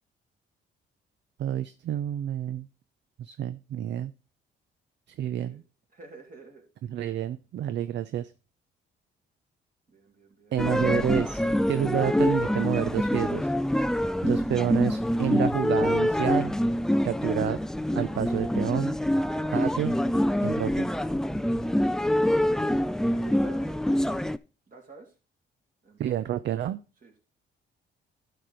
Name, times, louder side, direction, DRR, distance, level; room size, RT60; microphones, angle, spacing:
voice 1, 1.4-2.7 3.2-4.1 5.2-5.6 6.9-8.3 10.5-11.4 11.7-13.5 14.2-16.6 17.0-17.6 18.0-18.9 19.5-20.0 20.4-20.7 26.0-26.8, right 10 dB, 65° right, 12 dB, 0.5 m, -29 dB
voice 2, 5.9-6.6 9.9-10.6 22.8-23.9 24.7-25.1 25.8-26.1 27.0-27.2, right 4 dB, 45° right, 1 dB, 3.1 m, -49 dB
sound 1, 10.6-24.4, left 1 dB, 5° left, 0.3 m, -25 dB
11.0 x 5.2 x 4.3 m, 0.32 s
cardioid pair, 90°, 20 cm